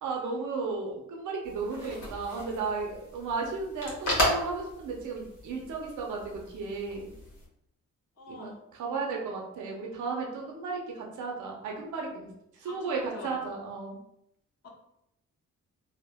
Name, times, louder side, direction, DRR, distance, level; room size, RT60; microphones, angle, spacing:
voice 1, 0.0-7.1 8.3-12.3 12.5-14.0, right 4 dB, 70° right, 0 dB, 0.6 m, -34 dB
sound 1, 1.4-7.5, equal, 70° left, 1.1 m, -35 dB
voice 2, 8.2-8.6 12.6-13.4 14.6-14.7, left 3 dB, 55° left, 0 dB, 0.8 m, -45 dB
3.4 x 2.1 x 2.2 m, 0.79 s
cardioid pair, 70°, 31 cm